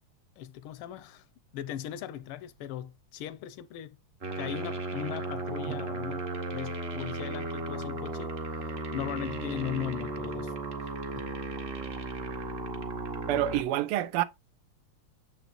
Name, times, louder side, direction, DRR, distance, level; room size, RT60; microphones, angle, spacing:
voice 1, 0.4-1.2 1.5-4.0 4.4-6.2 6.5-8.3 8.9-10.5 11.1-11.3, left 10 dB, 85° left, 1.5 m, -38 dB
sound 1, 4.2-13.6, right 3 dB, 45° right, 0.8 m, -35 dB
voice 2, 13.3-14.2, right 13 dB, 90° right, 1.5 m, -27 dB
6.9 x 5.9 x 2.5 m
omnidirectional pair, 2.4 m